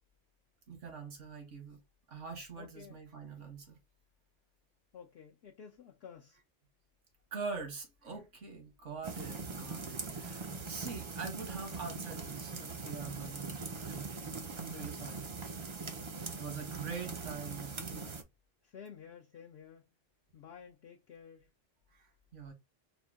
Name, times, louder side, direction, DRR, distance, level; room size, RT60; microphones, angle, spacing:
voice 1, 0.7-1.8 2.1-3.8 7.3-14.1 14.5-15.3 16.3-18.2 21.9-22.5, right 5 dB, 75° right, 1.6 m, -44 dB
voice 2, 2.6-3.0 4.9-6.4 14.6-14.9 16.1-16.7 18.6-19.9 20.3-21.5, left 7 dB, 65° left, 0.8 m, -53 dB
sound 1, 9.0-18.2, right 4 dB, 45° right, 0.4 m, -42 dB
4.4 x 2.1 x 3.4 m
omnidirectional pair, 1.2 m